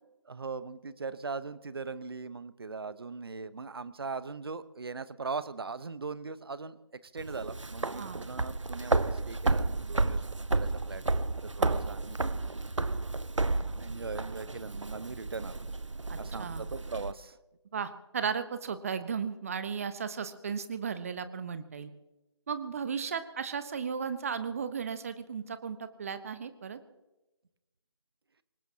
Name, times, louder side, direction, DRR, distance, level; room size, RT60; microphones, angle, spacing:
voice 1, 0.1-10.2 10.5-12.2 13.8-15.6 16.2-17.4, right 4 dB, 55° right, 15 dB, 0.9 m, -40 dB
sound 1, 7.2-17.1, right 3 dB, 90° right, 0.7 m, -32 dB
voice 2, 16.1-16.6 17.7-21.9 22.5-26.8, right 6 dB, 30° right, 11 dB, 1.0 m, -35 dB
25.0 x 20.0 x 2.8 m, 1.0 s
figure-of-eight pair, 155°, 15 cm